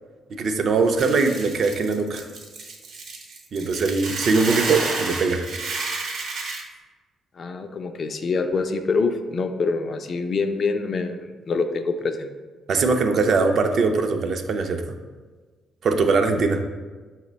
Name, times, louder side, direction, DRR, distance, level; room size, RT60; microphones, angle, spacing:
voice 1, 0.3-2.3 3.5-5.5 12.7-14.8 15.8-16.6, right 4 dB, 60° right, 5 dB, 0.4 m, -21 dB
Hiss / Boiling, 1.0-6.6, right 3 dB, 75° right, 0.8 m, -31 dB
voice 2, 7.4-12.3, left 4 dB, 50° left, 7 dB, 0.3 m, -25 dB
5.2 x 2.1 x 3.9 m, 1.4 s
cardioid pair, 90°, 0 cm